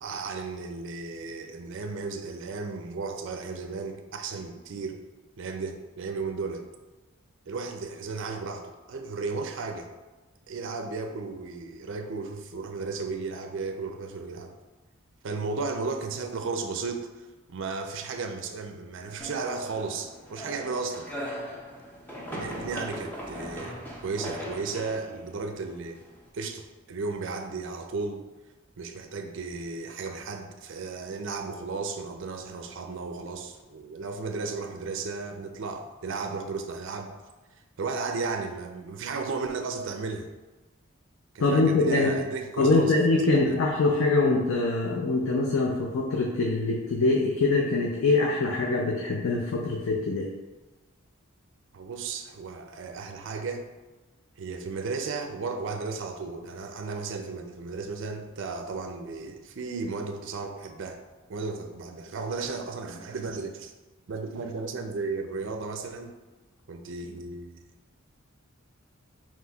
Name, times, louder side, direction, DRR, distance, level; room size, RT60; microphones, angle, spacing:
voice 1, 0.0-5.0 5.4-6.6 7.5-9.9 10.5-14.5 15.2-21.1 22.2-23.8 24.0-26.0 26.3-28.2 28.8-37.1 37.8-40.3 41.3-43.0 43.5-43.6 51.7-53.7 54.4-61.0 61.3-63.7 64.1-66.1 66.7-67.6, right 4 dB, 60° right, 6 dB, 0.4 m, -34 dB
sound 1, 19.2-26.3, equal, 10° left, 0.5 m, -39 dB
voice 2, 41.4-42.1 42.6-50.3, left 3 dB, 75° left, -1 dB, 0.5 m, -24 dB
5.8 x 3.0 x 2.3 m, 1.2 s
head